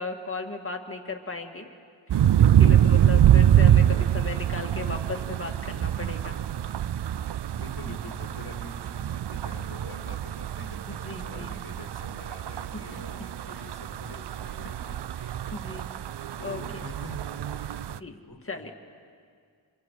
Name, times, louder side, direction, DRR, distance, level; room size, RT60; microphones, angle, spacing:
voice 1, 0.0-1.7 2.1-6.4 10.9-11.6 13.5-13.7 15.2-15.9 16.4-16.8 18.0-18.1 18.4-18.7, left 3 dB, 25° left, 3 dB, 2.0 m, -36 dB
sound 1, 2.1-18.0, right 10 dB, 60° right, 0.5 m, -24 dB
voice 2, 7.6-15.8 16.4-18.7, left 3 dB, 50° left, 5 dB, 2.0 m, -46 dB
29.0 x 26.5 x 4.7 m, 2.1 s
wide cardioid pair, 85°, 48 cm